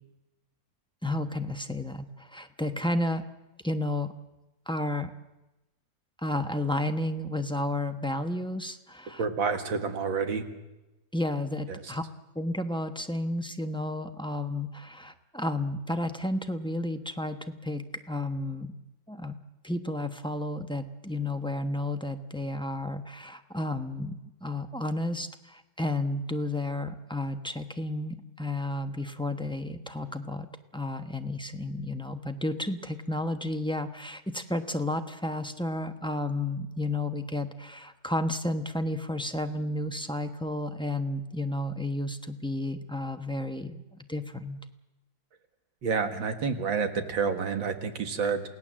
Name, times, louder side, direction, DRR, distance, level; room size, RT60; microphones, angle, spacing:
voice 1, 1.0-3.2 3.6-4.1 4.7-5.1 6.2-9.2 11.1-12.0 12.3-18.7 19.1-19.4 19.6-30.5 30.7-44.6, left 1 dB, 5° left, 7 dB, 0.6 m, -32 dB
voice 2, 9.2-10.4 11.7-11.8 45.8-48.4, right 5 dB, 85° right, 7 dB, 2.5 m, -29 dB
28.5 x 17.5 x 7.6 m, 1.0 s
omnidirectional pair, 2.0 m